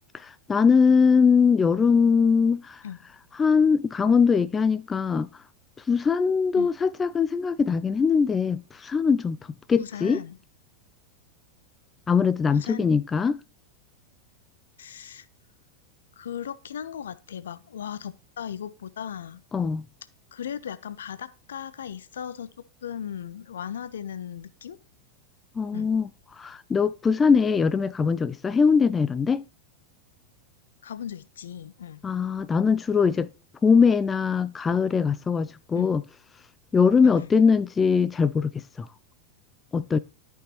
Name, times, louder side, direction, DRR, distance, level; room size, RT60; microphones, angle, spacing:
voice 1, 0.1-2.8 3.4-5.3 5.9-9.4 9.7-10.2 12.1-13.4 19.5-19.8 25.6-26.1 26.4-29.4 32.0-33.3 33.6-36.0 36.7-38.9 39.7-40.0, left 5 dB, 15° left, 0.3 m, -21 dB
voice 2, 9.8-10.4 12.5-12.9 14.8-15.3 16.2-19.4 20.3-24.8 25.7-25.9 30.8-32.0 35.7-35.9 37.0-37.3, left 9 dB, 65° left, 0.7 m, -37 dB
13.0 x 5.5 x 3.0 m
figure-of-eight pair, 90°, 0 cm